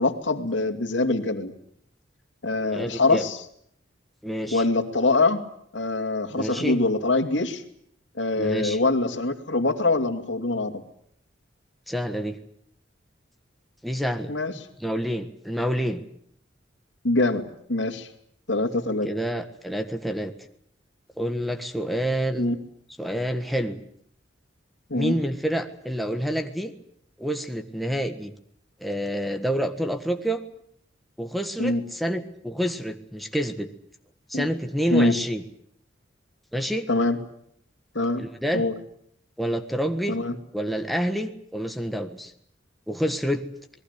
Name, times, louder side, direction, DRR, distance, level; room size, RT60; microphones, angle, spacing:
voice 1, 0.0-1.5 2.4-3.4 4.5-5.4 5.7-7.6 8.2-10.8 14.3-14.5 17.0-17.4 17.7-18.1 18.5-19.1 22.4-22.6 24.9-25.2 31.6-31.8 34.3-34.5 34.9-35.1 36.9-37.2 37.9-38.3 38.5-38.7 40.1-40.3, left 2 dB, 70° left, 7 dB, 2.6 m, -24 dB
voice 2, 2.6-3.2 4.2-4.6 6.3-6.8 8.4-8.8 11.9-12.4 13.8-14.3 14.8-16.0 19.0-20.3 21.2-22.6 23.0-23.8 24.9-26.7 27.2-28.3 28.8-30.4 31.2-33.7 34.3-35.4 36.5-36.9 38.2-38.7 39.4-40.2 40.5-42.3 42.9-43.4, equal, ahead, 5 dB, 1.5 m, -28 dB
27.5 x 20.5 x 8.2 m, 0.67 s
head